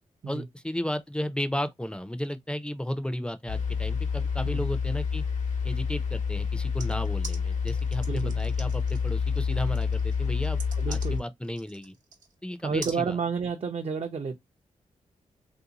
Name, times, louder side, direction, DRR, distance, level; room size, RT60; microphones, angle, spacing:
voice 1, 0.3-5.2 5.6-10.6 10.9-11.9 12.4-13.2, equal, 5° left, 0.5 m, -33 dB
sound 1, 3.5-11.2, left 6 dB, 75° left, 0.9 m, -28 dB
sound 2, 6.8-12.3 12.8-13.0, right 5 dB, 80° right, 0.9 m, -44 dB
voice 2, 10.7-11.2 12.6-14.4, right 5 dB, 50° right, 0.6 m, -31 dB
3.2 x 2.6 x 2.8 m
cardioid pair, 75°, 13 cm